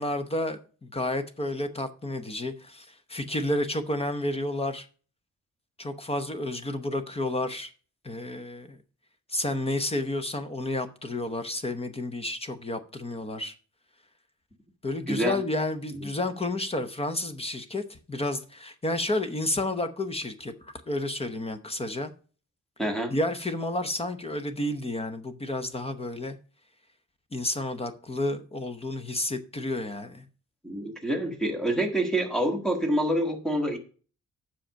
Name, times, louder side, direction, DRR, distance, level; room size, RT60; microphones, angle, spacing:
voice 1, 0.0-4.9 5.8-7.7 8.0-8.8 9.3-13.5 14.8-22.1 23.1-26.4 27.3-30.2, left 1 dB, 20° left, 0.7 m, -31 dB
voice 2, 15.1-15.4 15.9-16.1 22.8-23.2 30.6-33.8, right 1 dB, ahead, 1.3 m, -27 dB
7.6 x 5.8 x 6.2 m
wide cardioid pair, 180°, 30 cm